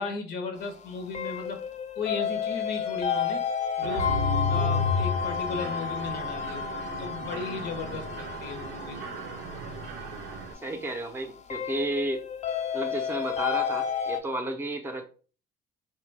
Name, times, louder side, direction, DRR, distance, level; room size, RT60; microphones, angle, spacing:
voice 1, 0.0-1.6 2.0-3.4 3.8-4.2 4.5-6.6 7.0-9.0, left 4 dB, 80° left, 6 dB, 0.7 m, -35 dB
sound 1, 0.6-14.2, left 7 dB, 45° left, 0.4 m, -32 dB
Mechanisms, 3.8-10.5, left 2 dB, 80° right, 0.5 m, -33 dB
voice 2, 10.6-12.2 12.7-15.1, right 1 dB, 15° right, 6 dB, 0.5 m, -32 dB
3.3 x 2.2 x 3.2 m, 0.39 s
cardioid pair, 110°, 17 cm